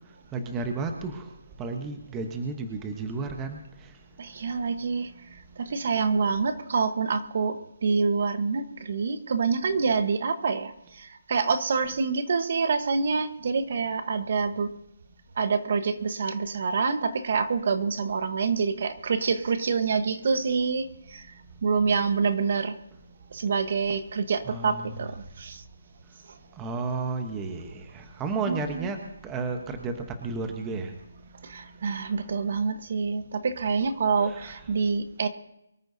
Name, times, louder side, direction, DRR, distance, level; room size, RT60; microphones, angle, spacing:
voice 1, 0.3-1.2 1.6-3.6 24.4-25.1 26.6-31.0 34.2-34.6, right 4 dB, 10° right, 5 dB, 1.0 m, -32 dB
voice 2, 4.2-5.1 5.6-14.7 15.4-21.3 21.6-22.8 23.3-25.6 28.5-28.9 31.4-35.3, right 5 dB, 40° right, 10 dB, 1.1 m, -27 dB
24.0 x 13.5 x 2.7 m, 0.85 s
hypercardioid pair, 170°, 0 cm